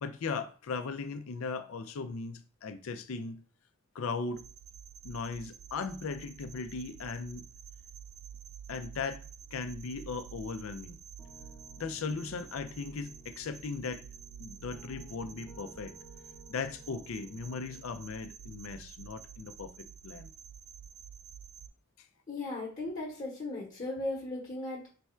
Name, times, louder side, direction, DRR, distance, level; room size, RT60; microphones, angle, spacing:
voice 1, 0.0-3.4 3.9-4.4 5.0-7.5 8.7-9.2 9.5-11.0 11.8-14.0 14.4-15.9 16.5-19.7 20.0-20.3, left 4 dB, 80° left, 0.4 m, -38 dB
sound 1, 4.3-21.7, right 8 dB, 85° right, 0.3 m, -50 dB
Piano, 11.2-18.1, right 1 dB, 10° left, 0.6 m, -56 dB
voice 2, 22.3-24.9, left 2 dB, 35° left, 1.0 m, -37 dB
3.3 x 2.3 x 4.3 m
head